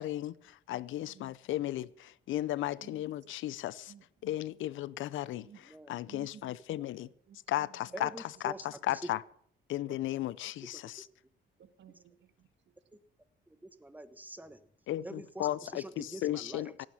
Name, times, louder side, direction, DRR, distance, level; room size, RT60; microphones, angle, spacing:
voice 1, 0.0-3.9 4.2-5.5 5.9-7.1 7.5-8.1 8.4-9.2 9.7-11.1 14.9-16.9, left 14 dB, 75° left, 0.6 m, -35 dB
voice 2, 1.0-1.4 1.6-1.7 2.8-3.0 3.9-4.0 5.4-5.6 6.0-8.0 9.9-10.0 11.6-12.5, right 9 dB, 65° right, 1.5 m, -56 dB
voice 3, 5.3-6.0 7.9-9.0 11.0-11.1 13.5-14.6 15.0-16.9, right 1 dB, 10° right, 1.3 m, -46 dB
17.0 x 9.3 x 7.2 m
cardioid pair, 90°, 20 cm